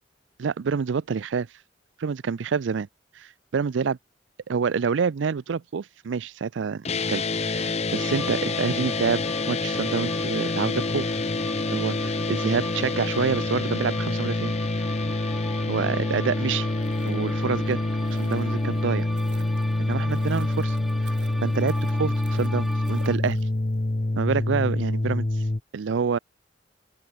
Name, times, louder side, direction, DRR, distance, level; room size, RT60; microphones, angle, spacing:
voice 1, 0.4-1.5 2.0-2.9 3.2-4.0 4.5-9.2 9.5-11.2 11.7-14.5 15.7-16.7 17.0-17.8 18.1-19.1 19.8-20.8 21.0-21.1 21.4-23.4 24.2-25.3 25.7-26.2, right 6 dB, 85° right, 0.4 m, -27 dB
sound 1, 6.9-25.6, left 2 dB, 35° left, 0.8 m, -26 dB
sound 2, 7.9-23.2, equal, ahead, 4.9 m, -39 dB
sound 3, 16.6-23.8 24.0-24.1, right 5 dB, 65° right, 8.0 m, -52 dB
open air
head